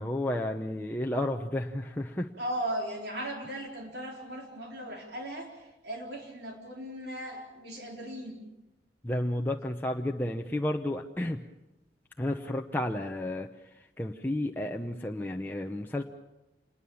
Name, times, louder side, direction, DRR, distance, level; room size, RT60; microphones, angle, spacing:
voice 1, 0.0-2.3 9.0-11.4 12.2-13.5 14.0-16.0, left 1 dB, 10° left, 1 dB, 0.9 m, -32 dB
voice 2, 2.4-8.5, right 1 dB, 65° right, 1 dB, 4.1 m, -37 dB
27.0 x 21.0 x 7.1 m, 0.98 s
head